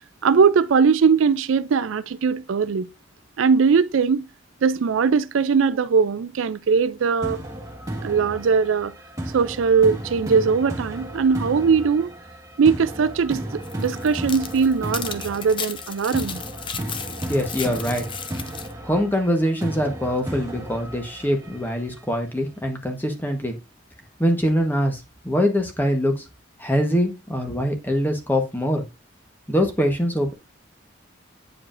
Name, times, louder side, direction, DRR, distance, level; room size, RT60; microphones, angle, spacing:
voice 1, 0.2-2.9 3.4-4.2 4.6-7.4 8.0-8.9 9.3-12.1 12.6-13.4 13.8-16.4, right 5 dB, 85° right, 0.4 m, -20 dB
sound 1, 7.2-22.2, right 1 dB, 15° right, 1.6 m, -34 dB
sound 2, 13.6-18.7, left 7 dB, 25° left, 0.5 m, -35 dB
voice 2, 17.3-18.0 18.8-23.6 24.2-26.2 26.6-28.8 29.5-30.3, equal, 10° left, 1.1 m, -23 dB
9.0 x 4.7 x 2.5 m
head